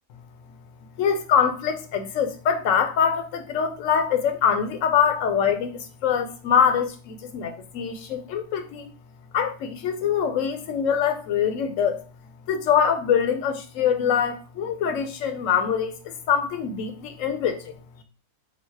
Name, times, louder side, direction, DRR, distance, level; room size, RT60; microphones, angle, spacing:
voice 1, 1.0-8.9 9.3-12.0 12.5-17.7, left 7 dB, 65° left, 7 dB, 0.9 m, -24 dB
3.9 x 2.1 x 4.4 m, 0.35 s
omnidirectional pair, 1.7 m